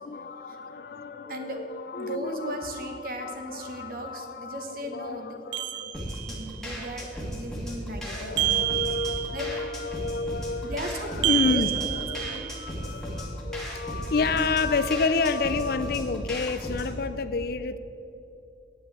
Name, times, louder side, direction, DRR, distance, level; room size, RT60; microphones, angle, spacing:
voice 1, 0.0-6.1 8.0-17.8, left 4 dB, 55° left, 12 dB, 0.4 m, -30 dB
voice 2, 0.9-1.7 2.0-5.4 5.8-5.9 6.2-8.7 9.3-9.5 10.6-11.7 12.2-12.5, right 1 dB, 50° right, 4 dB, 1.3 m, -37 dB
sound 1, 5.5-6.5 8.4-9.6 11.2-12.7, right 14 dB, 80° right, 0.6 m, -28 dB
sound 2, 5.9-17.0, equal, ahead, 1.6 m, -36 dB
8.6 x 8.1 x 8.0 m, 2.9 s
head